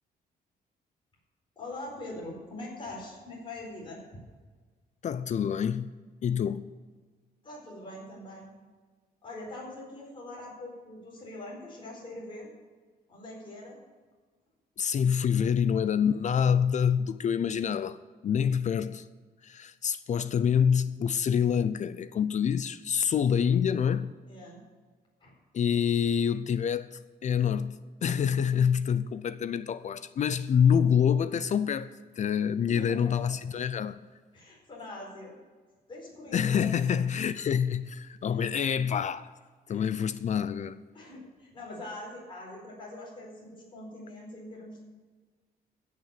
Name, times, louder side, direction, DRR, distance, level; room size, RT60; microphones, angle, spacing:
voice 1, 1.6-4.0 7.4-8.5 9.2-12.5 13.1-13.8 24.3-24.6 25.2-25.3 32.7-33.2 34.3-35.3 35.9-36.9 38.3-38.6 39.7-39.8 40.9-44.8, left 2 dB, 30° left, 4.5 m, -43 dB
voice 2, 5.0-5.9 6.2-6.6 14.8-18.0 18.2-19.1 19.4-24.1 25.5-34.0 36.3-39.3 39.7-40.8, left 7 dB, 50° left, 0.5 m, -26 dB
16.0 x 6.7 x 6.7 m
cardioid pair, 135°, 16 cm